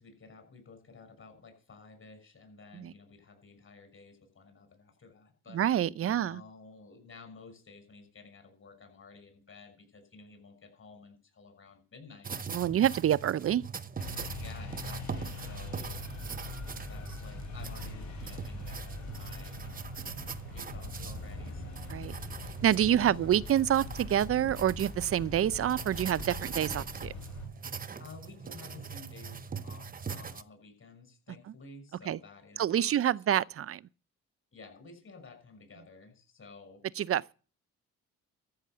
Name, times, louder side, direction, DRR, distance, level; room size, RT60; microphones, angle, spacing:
voice 1, 0.0-5.6 6.0-12.4 14.4-16.0 16.9-19.8 20.2-22.0 23.0-23.3 28.0-33.0 34.5-36.8, left 4 dB, 40° left, 6.0 m, -52 dB
voice 2, 5.5-6.4 12.5-13.6 21.9-22.1 22.6-27.1 32.1-32.2 32.6-33.8 37.0-37.3, right 10 dB, 50° right, 0.6 m, -27 dB
sound 1, 12.2-30.4, right 6 dB, 30° right, 0.9 m, -42 dB
sound 2, 14.0-27.5, left 3 dB, 70° left, 4.4 m, -43 dB
13.5 x 6.5 x 7.7 m
cardioid pair, 90°, 30 cm